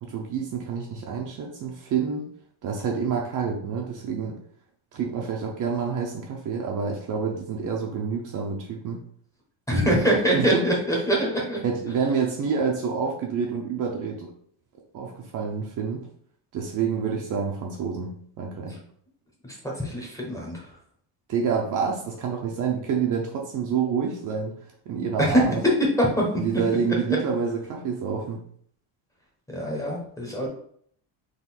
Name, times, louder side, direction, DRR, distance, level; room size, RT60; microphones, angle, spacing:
voice 1, 0.0-2.3 2.6-4.4 4.9-9.0 9.7-10.0 10.3-10.6 11.6-14.3 14.9-16.1 16.5-18.8 21.3-24.5 24.9-25.6 26.3-28.4, right 6 dB, 40° right, 0 dB, 0.6 m, -28 dB
voice 2, 9.7-11.6 19.4-20.7 25.2-25.4 26.0-26.4 29.5-30.5, equal, 5° left, -2 dB, 0.8 m, -24 dB
3.9 x 2.6 x 4.1 m, 0.62 s
cardioid pair, 165°, 49 cm